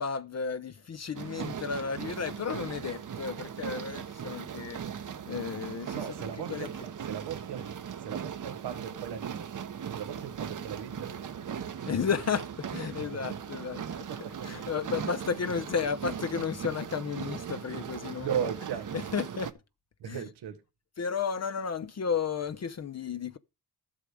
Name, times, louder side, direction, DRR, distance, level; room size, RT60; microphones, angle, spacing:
voice 1, 0.0-6.0 6.5-6.7 11.9-14.1 14.4-18.5 18.9-19.5 20.0-20.2 21.0-23.4, left 6 dB, 40° left, 0.8 m, -33 dB
sound 1, 1.1-19.5, right 8 dB, 50° right, 1.0 m, -39 dB
voice 2, 5.9-7.7 8.0-9.3 9.9-11.7 12.8-13.4 14.1-14.3 18.2-18.9 20.0-20.6, right 9 dB, 90° right, 1.3 m, -37 dB
11.5 x 7.5 x 4.9 m
cardioid pair, 80°, 39 cm